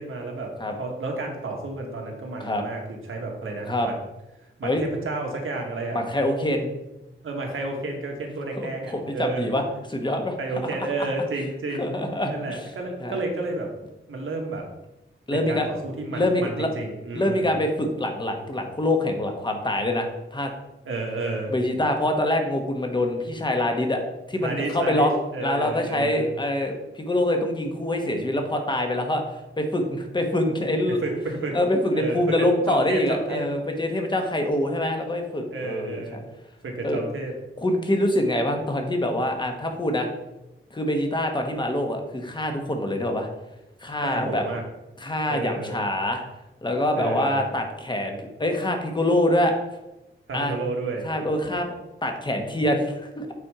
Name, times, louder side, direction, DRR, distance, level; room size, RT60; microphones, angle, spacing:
voice 1, 0.0-0.5 0.8-3.9 4.6-6.0 7.2-9.5 10.4-11.9 12.3-13.7 14.1-14.7 15.3-17.5 20.9-21.5 24.4-26.3 31.0-31.6 31.9-33.5 35.5-36.2 36.6-37.3 44.0-44.6 45.3-45.8 47.0-47.4 50.3-51.1, right 2 dB, 80° right, 1 dB, 1.7 m, -31 dB
voice 2, 5.9-6.7 8.6-9.6 9.9-10.3 10.6-11.1 11.8-12.7 13.0-13.2 15.3-15.7 16.1-16.7 17.1-20.5 21.5-24.0 24.3-25.1 25.4-29.2 29.6-31.0 31.5-36.2 36.8-37.0 37.6-40.1 40.7-43.3 43.8-44.4 45.0-46.2 46.6-49.5 50.3-50.6 51.0-51.7 52.0-53.3, left 1 dB, 20° left, 4 dB, 1.2 m, -25 dB
8.4 x 4.4 x 4.9 m, 0.94 s
wide cardioid pair, 135°, 21 cm